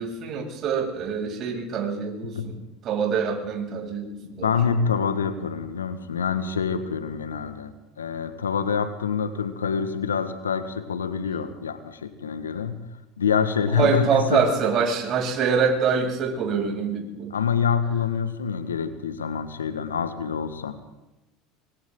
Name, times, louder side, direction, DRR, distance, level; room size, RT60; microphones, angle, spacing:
voice 1, 0.0-4.5 13.8-17.3, right 6 dB, 45° right, -1 dB, 7.5 m, -25 dB
voice 2, 4.3-12.8 13.2-14.4 17.3-20.7, left 6 dB, 90° left, 10 dB, 1.7 m, -26 dB
26.5 x 25.0 x 3.9 m, 0.96 s
hypercardioid pair, 75°, 0 cm